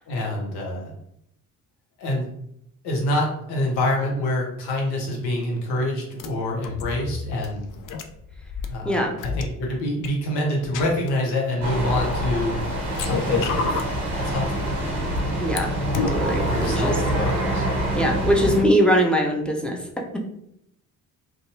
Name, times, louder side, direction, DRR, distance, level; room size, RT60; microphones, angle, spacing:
voice 1, 0.1-0.9 2.0-2.3 2.8-7.7 8.7-12.6 13.0-13.6 14.1-14.7 16.5-17.6, left 1 dB, 65° left, -1 dB, 0.9 m, -26 dB
sound 1, 6.2-6.3 6.6-8.7 9.2-9.4 10.0-10.1 10.6-11.1 11.9-12.5 12.9-13.9 14.7-15.6 15.9-16.1, left 5 dB, 50° left, 0.5 m, -29 dB
voice 2, 8.8-9.1 15.4-16.9 17.9-19.8, equal, ahead, 0 dB, 0.6 m, -22 dB
sound 2, 11.6-18.6, right 1 dB, 85° right, 0.7 m, -25 dB
2.6 x 2.3 x 2.7 m, 0.76 s
hypercardioid pair, 45°, 42 cm